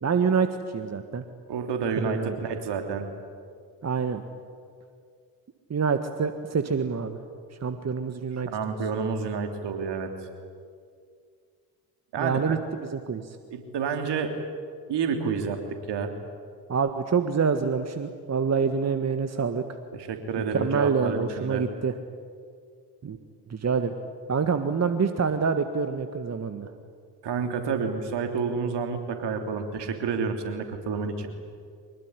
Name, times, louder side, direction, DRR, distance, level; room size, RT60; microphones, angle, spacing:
voice 1, 0.0-1.2 2.0-2.3 3.8-4.2 5.7-7.2 7.6-8.8 12.2-13.4 16.7-19.6 20.5-21.9 23.0-23.2 23.5-23.9 24.3-26.7, right 5 dB, 35° right, 9 dB, 1.7 m, -26 dB
voice 2, 1.5-3.1 8.5-10.1 12.1-12.6 13.5-14.3 14.9-16.1 19.9-21.6 27.2-31.3, right 5 dB, 60° right, 6 dB, 3.4 m, -29 dB
24.0 x 21.0 x 10.0 m, 2.2 s
hypercardioid pair, 50°, 46 cm